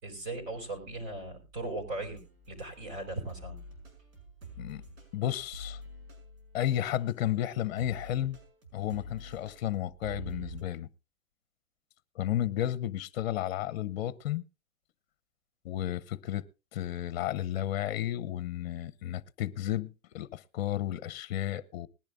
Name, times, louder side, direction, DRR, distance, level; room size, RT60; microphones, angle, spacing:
voice 1, 0.0-2.2 2.5-3.6, right 2 dB, 40° right, 5.2 m, -38 dB
sound 1, 2.0-7.5 7.8-10.6, right 1 dB, 80° right, 6.2 m, -47 dB
voice 2, 5.1-5.8 6.5-8.4 8.7-10.9 12.1-14.4 15.6-16.4 16.7-21.9, left 12 dB, 50° left, 0.8 m, -32 dB
20.5 x 10.5 x 2.5 m
hypercardioid pair, 155°, 41 cm